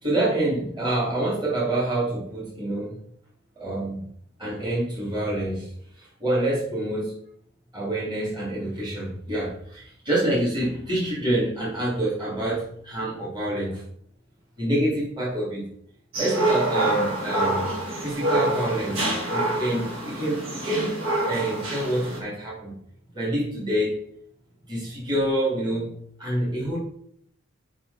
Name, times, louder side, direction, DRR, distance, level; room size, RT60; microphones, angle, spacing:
voice 1, 0.0-3.0 3.6-4.1 4.4-7.2 7.7-13.8 14.6-15.6 16.2-17.7 18.0-19.0 19.3-21.0 21.3-22.7 23.1-24.0 24.7-26.8, right 1 dB, 20° right, -8 dB, 2.9 m, -27 dB
sound 1, 16.1-22.2, right 2 dB, 90° right, 2.5 m, -26 dB
8.5 x 5.6 x 4.2 m, 0.66 s
head